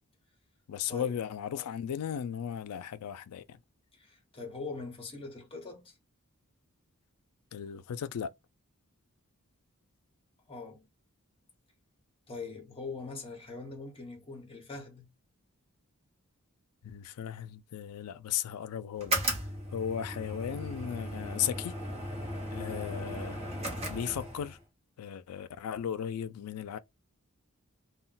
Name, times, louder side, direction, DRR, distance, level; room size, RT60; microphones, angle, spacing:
voice 1, 0.7-3.6 7.5-8.3 16.8-19.2 19.7-21.8 22.5-23.4 23.9-24.6 25.0-26.8, left 9 dB, 80° left, 0.4 m, -36 dB
voice 2, 3.9-6.0 10.5-10.8 12.3-15.1, left 3 dB, 25° left, 0.9 m, -42 dB
sound 1, 18.9-24.6, right 1 dB, 25° right, 0.9 m, -36 dB
2.2 x 2.1 x 3.8 m
head